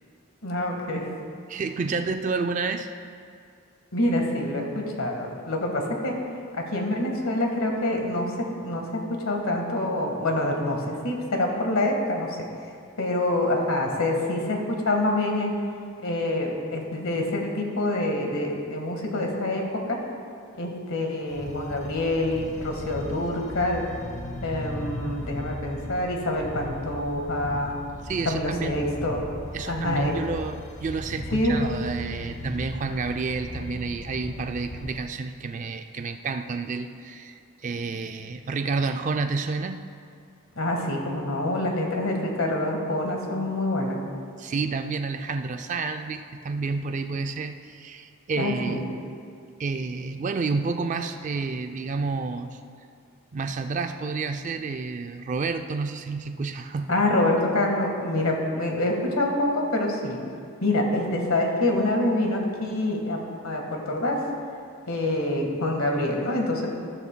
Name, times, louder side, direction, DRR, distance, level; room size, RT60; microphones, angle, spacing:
voice 1, 0.4-1.0 3.9-6.2 6.5-12.4 13.0-15.5 16.0-20.0 20.6-23.8 24.4-27.8 28.2-29.2 29.7-30.2 31.3-31.6 40.6-44.0 48.4-48.9 56.9-60.2 60.6-64.2 64.9-66.7, left 1 dB, 80° left, 1 dB, 1.6 m, -26 dB
voice 2, 1.5-2.9 28.0-28.8 29.5-39.8 44.4-48.9 49.6-52.6 53.3-57.0, right 4 dB, 35° right, 7 dB, 0.3 m, -30 dB
sound 1, 21.3-35.0, left 1 dB, 35° left, 0.7 m, -37 dB
13.5 x 12.0 x 2.2 m, 2.3 s
head